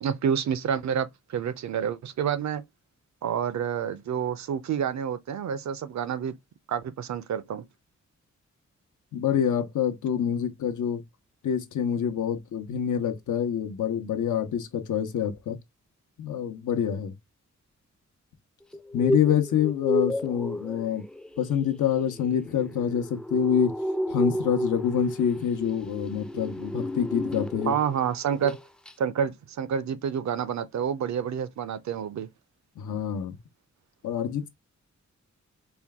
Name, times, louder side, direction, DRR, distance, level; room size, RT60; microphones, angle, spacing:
voice 1, 0.0-2.6 3.2-6.4 6.7-7.6 27.7-28.6 29.0-32.3, right 8 dB, 70° right, 0.5 m, -28 dB
voice 2, 9.1-11.0 11.4-15.6 16.2-17.1 18.9-21.0 21.4-23.8 24.1-27.8 32.8-33.4 34.0-34.5, left 8 dB, 90° left, 0.8 m, -26 dB
sound 1, 18.7-28.0 28.3-28.6 28.9-29.0, left 1 dB, 5° left, 0.3 m, -32 dB
4.4 x 2.2 x 3.5 m
cardioid pair, 95°, 29 cm